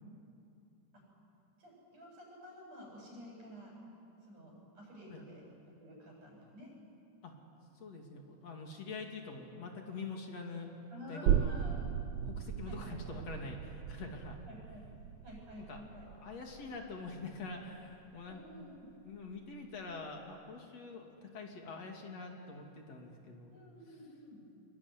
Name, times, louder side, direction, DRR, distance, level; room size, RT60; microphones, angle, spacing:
voice 1, 1.6-3.8 4.2-6.7 10.9-11.9 12.7-13.3 14.5-14.9 15.2-16.1 18.3-18.9 23.5-24.5, left 1 dB, 90° right, -2 dB, 9.5 m, -51 dB
voice 2, 7.7-10.7 11.1-11.6 12.3-14.4 15.6-18.4 19.0-23.6, left 3 dB, 55° left, 2 dB, 3.7 m, -45 dB
sound 1, 11.3-18.5 18.9-19.0, right 9 dB, 70° right, 1.7 m, -36 dB
25.0 x 23.0 x 10.0 m, 2.6 s
omnidirectional pair, 3.5 m